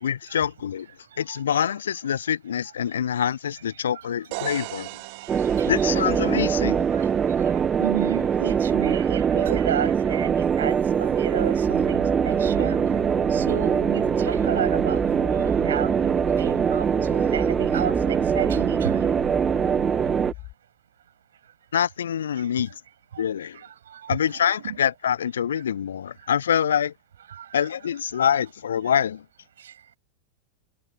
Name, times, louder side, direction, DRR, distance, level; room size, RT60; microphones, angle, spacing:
voice 1, 0.0-0.9 1.2-4.9 5.7-6.9 21.7-22.7 23.2-23.6 24.1-26.9 27.5-29.2, left 8 dB, 65° left, 1.1 m, -25 dB
voice 2, 1.0-1.4 3.9-4.1 5.2-5.9 6.9-7.1 7.4-12.8 13.3-19.1 23.1-23.2 23.5-24.8 27.3-27.7 28.8-28.9 29.6-29.7, right 9 dB, 65° right, 7.4 m, -33 dB
sound 1, 4.3-8.1, right 28 dB, 45° right, 3.7 m, -40 dB
sound 2, 5.3-20.3, right 7 dB, 20° right, 1.5 m, -23 dB
sound 3, 11.6-20.5, left 21 dB, 40° left, 2.3 m, -38 dB
figure-of-eight pair, 90°, 0 cm